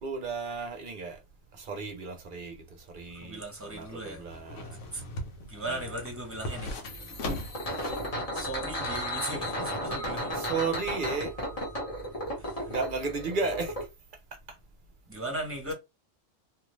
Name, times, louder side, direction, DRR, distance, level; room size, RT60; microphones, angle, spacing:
voice 1, 0.0-1.2 1.6-2.6 2.9-4.8 5.7-5.9 9.3-9.5 10.4-11.3 12.7-13.7, right 4 dB, 50° right, 0.7 m, -34 dB
sound 1, 3.0-8.1 8.4-8.5, left 1 dB, 70° left, 1.1 m, -39 dB
voice 2, 3.2-4.2 4.9-5.0 5.5-6.7 8.3-10.4 12.4-12.5 15.1-15.7, right 1 dB, 10° right, 1.0 m, -37 dB
sound 2, 6.8-13.8, equal, 30° left, 1.0 m, -34 dB
2.5 x 2.5 x 3.0 m
omnidirectional pair, 1.3 m